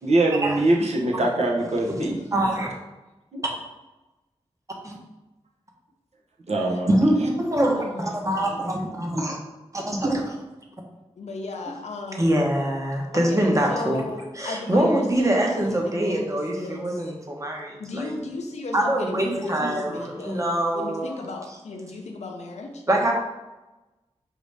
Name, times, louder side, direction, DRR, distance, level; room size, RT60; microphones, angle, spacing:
voice 1, 0.0-2.2 3.3-3.4 6.5-6.9, right 2 dB, 75° right, -1 dB, 0.8 m, -22 dB
voice 2, 2.3-2.7 4.8-5.0 6.9-9.4 9.7-10.5 12.2-14.0 14.4-18.1 18.7-21.2 22.9-23.1, right 1 dB, 30° right, 0 dB, 0.9 m, -24 dB
voice 3, 7.6-8.6 11.2-12.4 13.1-16.9 17.8-20.5 20.7-22.8, left 3 dB, 90° left, 2 dB, 0.6 m, -35 dB
4.8 x 2.7 x 3.3 m, 1.1 s
wide cardioid pair, 55°, 11 cm